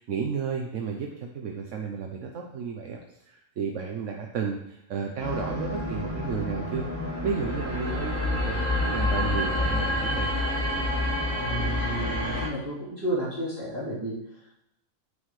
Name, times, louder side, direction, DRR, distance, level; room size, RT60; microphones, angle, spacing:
voice 1, 0.0-3.0 3.3-6.9 7.2-10.3, right 6 dB, 70° right, 2 dB, 1.1 m, -32 dB
sound 1, 5.2-12.5, left 1 dB, 70° left, 4.2 m, -28 dB
voice 2, 11.4-14.5, equal, 15° right, -10 dB, 3.1 m, -32 dB
9.5 x 7.4 x 3.2 m, 0.81 s
omnidirectional pair, 1.4 m